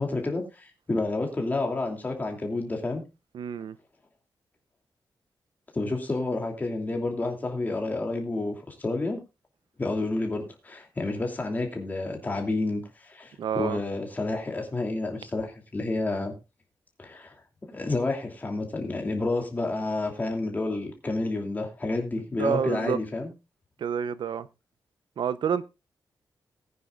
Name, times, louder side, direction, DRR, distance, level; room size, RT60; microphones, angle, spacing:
voice 1, 0.0-3.0 5.7-9.2 9.8-16.3 17.0-17.3 17.7-23.3, left 2 dB, 20° left, 2.8 m, -30 dB
voice 2, 3.3-3.8 13.4-13.8 22.4-23.0 23.8-24.5 25.2-25.7, right 8 dB, 85° right, 0.7 m, -28 dB
19.5 x 9.5 x 2.4 m
wide cardioid pair, 170°, 8 cm